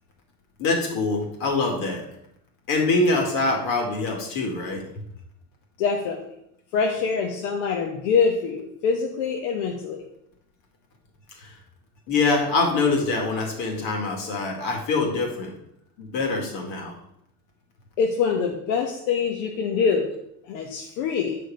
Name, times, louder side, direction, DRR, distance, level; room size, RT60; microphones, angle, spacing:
voice 1, 0.6-2.0 2.7-4.8 11.3-11.5 12.1-15.5 16.0-16.9, left 3 dB, 65° left, 1 dB, 2.5 m, -24 dB
voice 2, 5.8-6.3 6.7-10.0 18.0-20.1 20.4-21.4, left 5 dB, 85° left, 1 dB, 1.2 m, -24 dB
8.8 x 5.0 x 5.2 m, 0.75 s
cardioid pair, 150°, 35 cm